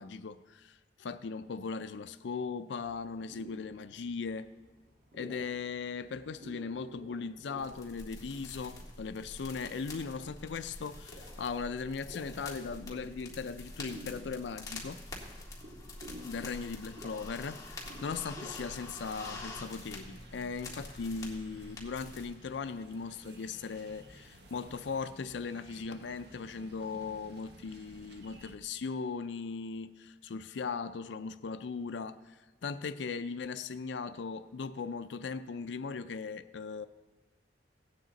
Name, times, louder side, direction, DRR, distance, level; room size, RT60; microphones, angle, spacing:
voice 1, 0.0-4.5 5.1-15.1 16.2-36.9, left 5 dB, 85° left, 0.5 m, -38 dB
sound 1, 2.8-18.9, equal, 50° right, 2.8 m, -54 dB
sound 2, 7.6-22.2, left 2 dB, 20° left, 2.0 m, -46 dB
sound 3, 17.8-28.6, right 1 dB, 65° right, 1.3 m, -56 dB
17.0 x 9.0 x 4.0 m
head